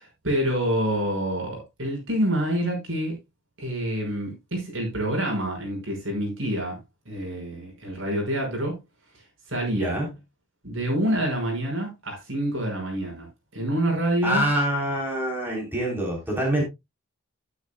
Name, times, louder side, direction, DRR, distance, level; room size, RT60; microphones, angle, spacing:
voice 1, 0.0-3.2 3.6-6.8 7.1-8.8 9.5-9.9 10.6-13.3 13.5-14.5, right 1 dB, 70° right, 5.8 m, -27 dB
voice 2, 9.7-10.1 14.2-16.6, right 1 dB, 10° right, 3.9 m, -25 dB
12.0 x 10.5 x 2.3 m
head